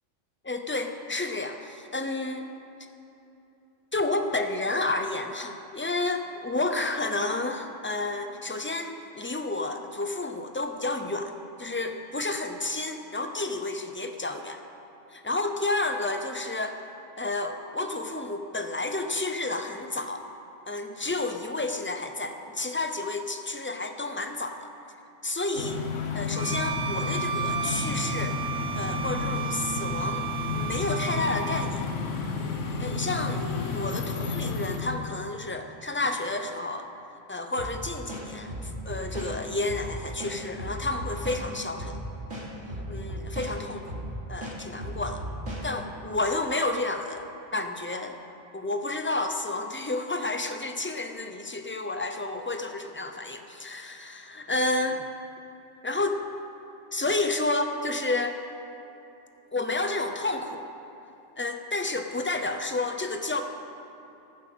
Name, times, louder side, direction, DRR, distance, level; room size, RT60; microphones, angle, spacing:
voice 1, 0.4-2.5 3.9-14.6 15.1-16.8 17.2-20.2 20.7-24.7 25.2-25.8 26.1-28.4 28.8-31.9 32.8-33.4 33.7-36.9 37.3-42.0 42.9-44.0 44.3-45.2 45.6-48.2 48.5-55.0 55.8-56.2 56.9-58.4 59.5-60.6 61.4-63.4, left 2 dB, 10° left, 6 dB, 0.6 m, -30 dB
sound 1, 25.6-34.8, left 4 dB, 75° left, 1.5 m, -31 dB
Bowed string instrument, 26.3-31.8, right 8 dB, 40° right, 0.8 m, -34 dB
sound 2, 37.6-37.7 38.1-39.3 39.7-39.8 40.2-41.4 41.8-42.0 42.3-43.5 43.9-44.1 44.4-45.6, right 1 dB, 75° right, 3.6 m, -36 dB
14.5 x 11.0 x 6.2 m, 2.9 s
omnidirectional pair, 1.3 m